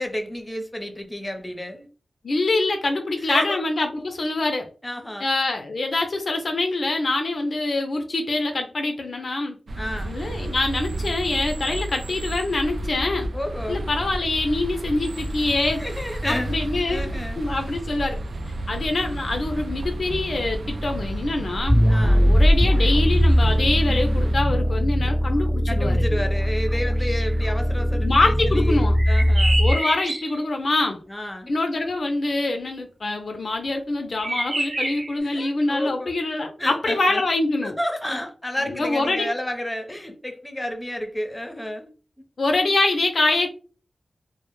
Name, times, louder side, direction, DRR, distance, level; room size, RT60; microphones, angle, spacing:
voice 1, 0.0-1.9 3.3-3.6 4.8-5.3 9.8-10.2 13.3-13.9 15.8-17.4 21.9-22.3 25.7-29.6 30.8-31.5 35.2-36.1 36.6-37.2 37.6-41.9, left 1 dB, 15° left, 0.6 m, -31 dB
voice 2, 2.2-4.7 5.2-9.6 10.0-13.3 13.7-15.8 16.2-17.0 17.4-18.2 18.7-21.8 22.3-26.0 28.0-29.0 29.6-31.0 31.5-37.7 38.7-39.3 42.4-43.5, left 2 dB, 65° left, 0.4 m, -24 dB
sound 1, 9.7-24.3, right 1 dB, 80° right, 0.3 m, -31 dB
sound 2, 21.6-29.8, equal, 30° right, 0.6 m, -20 dB
sound 3, 29.0-30.4 34.2-35.2, right 1 dB, 60° right, 0.8 m, -27 dB
2.1 x 2.0 x 3.0 m
cardioid pair, 60°, 0 cm